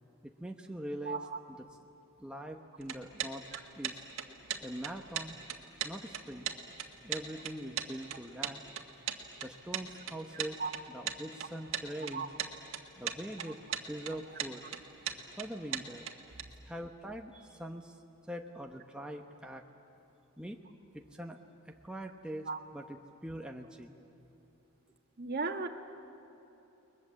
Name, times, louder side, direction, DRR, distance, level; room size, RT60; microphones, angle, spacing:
voice 1, 0.2-1.2 2.2-3.4 3.8-4.0 4.6-5.4 5.8-6.5 7.0-8.6 9.4-10.6 10.9-12.3 13.0-13.6 13.9-14.6 15.4-16.1 16.6-18.0 18.3-19.6 20.4-20.6 20.9-24.0, right 1 dB, 5° right, 2 dB, 0.9 m, -43 dB
voice 2, 1.0-1.4 3.5-3.6 10.6-10.7 12.1-12.3 22.5-22.6 25.2-25.7, right 4 dB, 45° right, 5 dB, 1.6 m, -35 dB
sound 1, 2.8-16.4, right 8 dB, 65° right, 1.8 m, -38 dB
30.0 x 21.5 x 7.6 m, 3.0 s
head